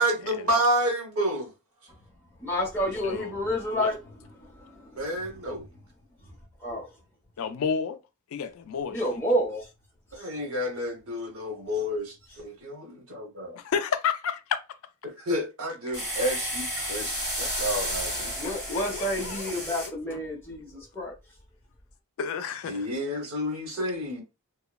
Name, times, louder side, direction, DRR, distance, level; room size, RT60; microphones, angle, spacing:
voice 1, 0.0-1.5 5.0-5.7 10.1-13.6 15.3-18.3 22.7-24.2, equal, 70° right, 0.9 m, -29 dB
voice 2, 2.4-4.0 4.4-5.4 6.6-6.9 8.9-9.7 18.3-21.1, equal, 10° left, 0.8 m, -30 dB
voice 3, 3.0-3.4 3.7-3.9 7.4-8.0 8.3-9.2 13.6-14.6 18.4-19.5 20.1-20.2 22.2-22.9, left 6 dB, 70° left, 0.3 m, -31 dB
sound 1, 15.9-19.9, equal, 10° right, 1.5 m, -32 dB
2.9 x 2.1 x 2.2 m
head